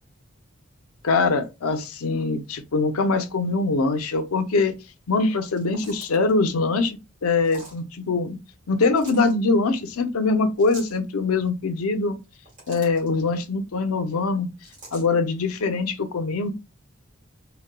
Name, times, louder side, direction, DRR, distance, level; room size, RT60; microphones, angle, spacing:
voice 1, 1.0-4.8 5.1-8.4 8.7-12.2 12.7-14.5 14.9-16.5, left 3 dB, 90° left, 0.5 m, -23 dB
sound 1, 5.5-6.3 7.4-7.8 8.8-9.3 10.6-11.0 12.2-13.1 14.6-15.1, right 2 dB, 40° right, 1.6 m, -44 dB
4.0 x 2.2 x 2.2 m
head